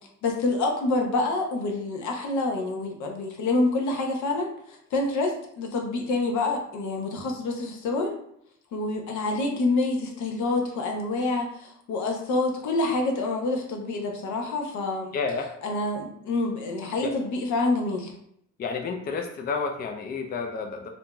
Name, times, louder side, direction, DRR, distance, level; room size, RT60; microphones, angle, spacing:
voice 1, 0.2-8.1 8.7-15.1 15.6-18.1, left 2 dB, 75° left, 2 dB, 0.7 m, -27 dB
voice 2, 15.1-15.5 17.0-17.1 18.6-20.9, left 4 dB, 30° left, 4 dB, 0.4 m, -30 dB
2.8 x 2.6 x 2.2 m, 0.70 s
cardioid pair, 90°, 30 cm